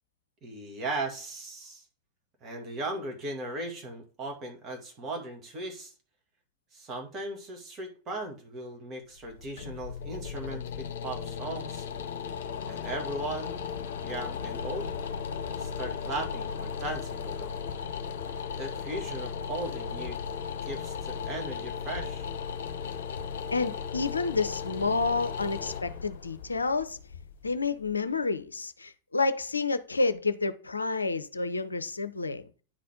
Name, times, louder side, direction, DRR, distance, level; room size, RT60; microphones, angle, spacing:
voice 1, 0.4-1.8 2.4-5.9 6.7-11.9 12.7-13.6 14.0-14.9 15.6-17.6 18.6-20.2 20.6-22.3, right 2 dB, 25° right, 2.2 m, -37 dB
sound 1, 9.2-28.1, left 6 dB, 60° left, 0.9 m, -36 dB
voice 2, 23.5-27.0 27.4-32.4, left 4 dB, 80° left, 0.5 m, -29 dB
9.7 x 4.2 x 3.7 m
figure-of-eight pair, 90°, 0 cm